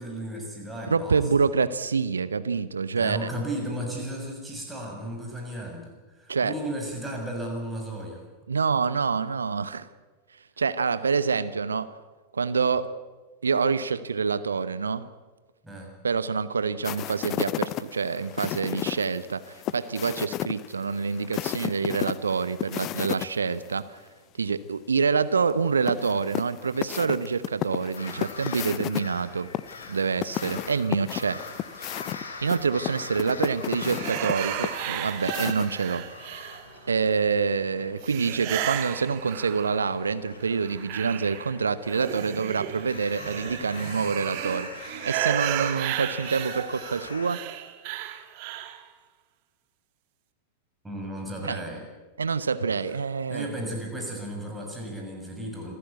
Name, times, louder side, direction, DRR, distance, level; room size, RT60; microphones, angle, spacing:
voice 1, 0.0-1.5 3.0-8.2 15.6-16.0 50.8-51.8 52.7-52.8 53.3-55.7, right 1 dB, 10° right, 1 dB, 6.9 m, -34 dB
voice 2, 0.9-3.3 6.3-6.5 8.5-9.9 10.6-11.9 12.3-13.0 13.4-15.1 16.0-24.0 24.4-29.5 29.9-31.4 31.8-32.1 32.4-36.1 36.4-36.5 36.9-44.7 45.0-47.4 51.4-51.6 52.2-53.5, right 5 dB, 75° right, 15 dB, 0.9 m, -26 dB
sound 1, 16.8-23.3 23.6-23.7 25.9-29.0 29.5-36.0, left 14 dB, 35° left, 0.7 m, -33 dB
sound 2, 27.9-47.3, left 3 dB, 70° left, 3.3 m, -44 dB
sound 3, 33.8-36.9 38.0-40.0 40.4-48.8, right 13 dB, 45° right, 1.8 m, -34 dB
26.5 x 15.0 x 8.2 m, 1.3 s
figure-of-eight pair, 90°, 0 cm